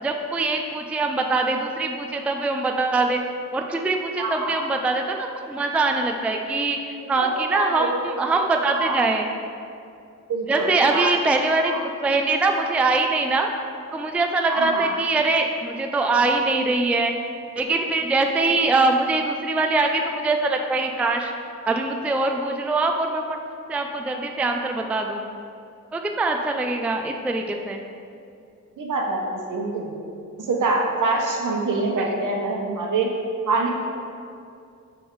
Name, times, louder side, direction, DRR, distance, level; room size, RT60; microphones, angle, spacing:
voice 1, 0.0-3.2 3.5-6.8 7.1-9.3 10.5-11.7 12.0-13.5 13.9-17.1 17.6-21.3 21.7-23.2 23.7-25.2 25.9-27.8, right 3 dB, 5° right, 4 dB, 0.3 m, -23 dB
voice 2, 4.2-4.7 7.0-8.0 8.7-9.0 10.3-11.1 11.6-11.8 14.5-14.9 28.8-29.9 30.4-33.1 33.5-33.7, right 3 dB, 70° right, -1 dB, 1.1 m, -25 dB
6.7 x 3.6 x 4.7 m, 2.5 s
cardioid pair, 100°, 32 cm